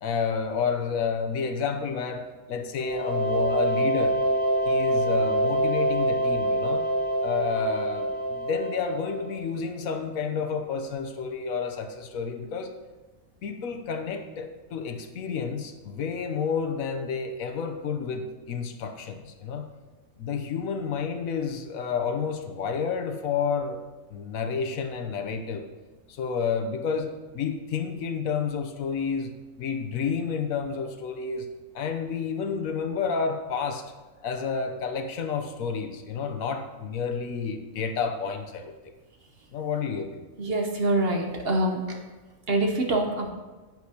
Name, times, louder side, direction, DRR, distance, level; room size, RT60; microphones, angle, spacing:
voice 1, 0.0-4.2 4.6-6.9 7.2-12.7 13.4-19.7 20.2-23.8 24.1-25.7 26.1-29.3 29.6-31.5 31.7-33.8 34.2-38.7 39.5-40.3, left 5 dB, 75° left, 6 dB, 1.2 m, -30 dB
sound 1, 2.8-9.4, right 1 dB, 25° left, 1.6 m, -25 dB
voice 2, 40.4-42.0 42.5-43.3, right 1 dB, 50° right, 2 dB, 1.0 m, -25 dB
10.5 x 8.3 x 2.8 m, 1.2 s
omnidirectional pair, 1.5 m